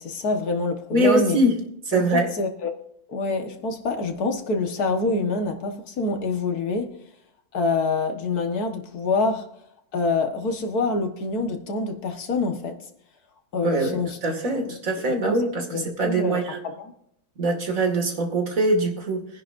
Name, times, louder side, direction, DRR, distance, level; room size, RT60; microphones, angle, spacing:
voice 1, 0.0-1.4 1.9-2.7 3.1-7.0 7.5-9.5 9.9-12.8 13.5-14.2 14.5-15.4 15.7-16.9, left 3 dB, 90° left, 1.9 m, -26 dB
voice 2, 0.9-1.6 1.9-2.3 13.6-16.6 17.4-19.3, right 2 dB, 60° right, 2.5 m, -23 dB
22.0 x 10.5 x 2.6 m
omnidirectional pair, 1.6 m